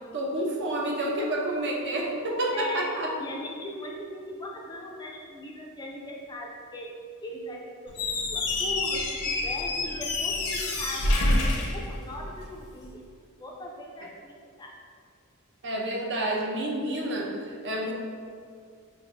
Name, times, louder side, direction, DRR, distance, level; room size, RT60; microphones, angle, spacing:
voice 1, 0.1-3.1 15.6-17.9, right 1 dB, 55° right, -1 dB, 0.6 m, -29 dB
voice 2, 2.5-2.8 3.2-6.9 7.2-13.0 13.4-14.7, left 1 dB, 20° left, -1 dB, 0.4 m, -39 dB
Squeak, 7.9-12.5, left 2 dB, 70° left, 0.6 m, -27 dB
5.5 x 2.5 x 2.5 m, 2.2 s
head